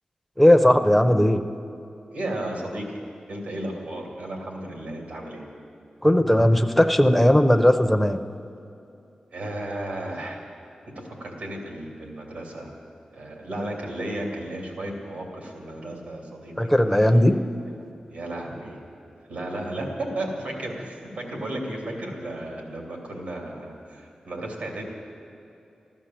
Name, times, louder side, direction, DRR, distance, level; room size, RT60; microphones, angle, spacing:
voice 1, 0.4-1.4 6.0-8.2 16.6-17.4, left 1 dB, 5° left, 6 dB, 0.6 m, -17 dB
voice 2, 2.1-2.9 3.3-5.5 9.3-10.4 11.0-12.7 13.1-16.7 18.1-18.8 19.3-24.9, right 1 dB, 85° right, 0 dB, 2.8 m, -34 dB
15.0 x 11.5 x 7.5 m, 2.7 s
wide cardioid pair, 95°, 2 cm